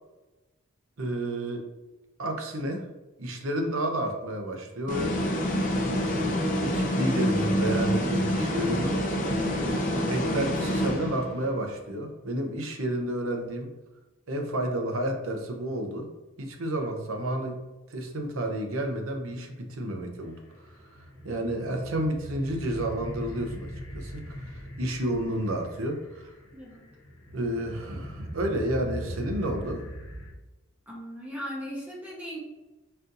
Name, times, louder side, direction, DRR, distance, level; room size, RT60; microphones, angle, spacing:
voice 1, 1.0-1.7 2.2-2.9 3.2-5.2 5.8-9.0 9.3-13.7 14.3-16.1 16.4-17.6 17.9-21.0 21.2-26.3 27.3-29.9, right 1 dB, 85° right, 3 dB, 0.7 m, -31 dB
sound 1, 4.9-11.5, equal, 40° left, 0.6 m, -27 dB
sound 2, 20.2-30.3, equal, 65° left, 1.0 m, -40 dB
voice 2, 26.5-26.8 30.9-32.4, equal, 5° right, -3 dB, 0.6 m, -38 dB
4.2 x 2.6 x 3.8 m, 1.1 s
head